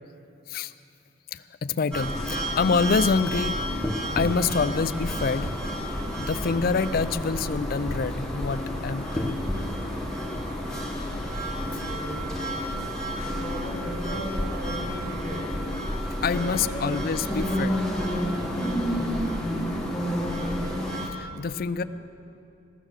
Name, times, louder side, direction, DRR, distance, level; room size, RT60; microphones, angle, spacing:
voice 1, 1.3-3.6 4.2-5.5 6.2-9.4 16.2-17.8 21.1-21.8, left 5 dB, 45° left, 13 dB, 0.4 m, -26 dB
sound 1, 1.9-21.1, equal, 5° left, 1.3 m, -30 dB
voice 2, 11.5-12.2 13.2-15.5 16.3-16.9 19.8-20.7, equal, 65° right, -10 dB, 3.7 m, -37 dB
16.0 x 12.0 x 6.5 m, 2.6 s
head